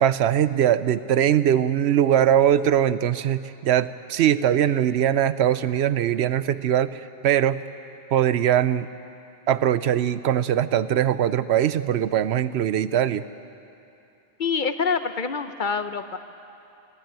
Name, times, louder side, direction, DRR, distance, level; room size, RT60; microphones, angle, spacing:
voice 1, 0.0-7.6 8.1-8.9 9.5-13.2, right 10 dB, 80° right, 14 dB, 0.9 m, -21 dB
voice 2, 14.4-16.2, left 5 dB, 50° left, 10 dB, 0.9 m, -26 dB
20.5 x 16.0 x 9.0 m, 2.7 s
omnidirectional pair, 1.1 m